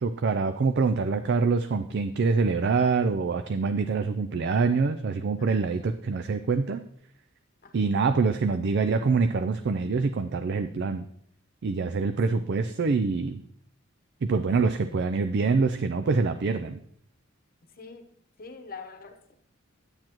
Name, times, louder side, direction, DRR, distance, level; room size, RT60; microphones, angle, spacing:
voice 1, 0.0-6.8 7.7-11.1 11.6-13.4 14.2-16.8, right 4 dB, 55° right, 9 dB, 0.4 m, -25 dB
voice 2, 5.4-5.9 7.6-7.9 17.7-19.4, left 4 dB, 45° left, 7 dB, 1.0 m, -46 dB
9.8 x 8.8 x 3.0 m, 0.68 s
head